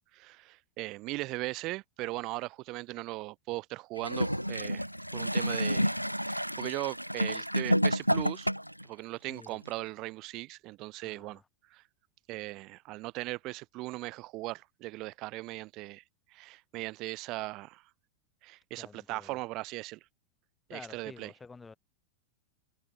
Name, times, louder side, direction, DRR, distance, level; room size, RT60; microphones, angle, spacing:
voice 1, 0.1-4.9 5.1-8.5 8.8-11.4 11.7-11.8 12.3-16.0 16.3-17.8 18.4-20.0 20.7-21.3, right 20 dB, 40° right, 2.0 m, -39 dB
Gurgling / Toilet flush, 4.0-8.8 9.7-9.8, equal, 90° right, 0.4 m, -30 dB
voice 2, 9.3-9.6 11.0-11.4 18.8-19.4 20.7-21.7, left 4 dB, 10° left, 3.2 m, -50 dB
figure-of-eight pair, 90°, 0 cm